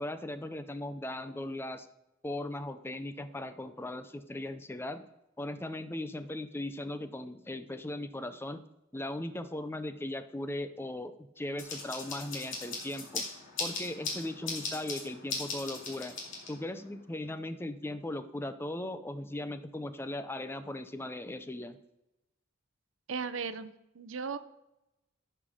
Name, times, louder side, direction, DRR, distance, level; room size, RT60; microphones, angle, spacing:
voice 1, 0.0-1.9 2.2-5.0 5.4-8.6 8.9-13.2 13.6-16.1 16.5-21.8, left 1 dB, 10° left, 11 dB, 0.5 m, -38 dB
sound 1, 11.6-16.8, left 3 dB, 80° left, 2.5 m, -39 dB
voice 2, 23.1-24.4, right 5 dB, 80° right, 12 dB, 0.6 m, -37 dB
11.0 x 5.7 x 4.9 m, 0.91 s
head